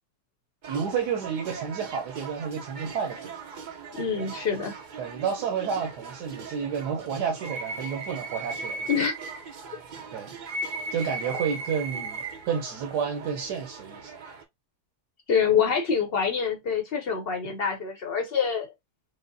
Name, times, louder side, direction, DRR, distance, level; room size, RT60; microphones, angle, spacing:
sound 1, 0.6-14.4, right 3 dB, 65° right, 0.4 m, -38 dB
voice 1, 0.7-3.3 4.2-4.3 5.0-8.9 10.1-10.3 10.9-14.1, right 7 dB, 85° right, 1.3 m, -30 dB
voice 2, 3.9-4.7 8.9-9.1 15.3-18.7, left 6 dB, 50° left, 0.7 m, -26 dB
4.9 x 2.1 x 2.5 m
omnidirectional pair, 1.7 m